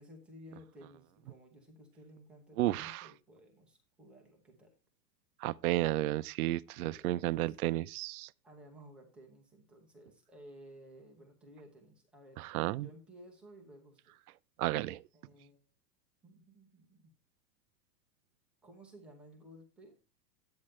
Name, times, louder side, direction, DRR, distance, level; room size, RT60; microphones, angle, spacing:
voice 1, 0.0-4.7 6.7-7.5 8.4-12.4 12.8-14.2 15.1-15.7 16.2-17.1 18.6-20.0, equal, ahead, 0.4 m, -56 dB
voice 2, 2.6-3.1 5.4-8.3 12.4-12.9 14.6-15.0, right 16 dB, 65° right, 0.5 m, -32 dB
10.5 x 8.7 x 3.1 m
supercardioid pair, 165°, 49 cm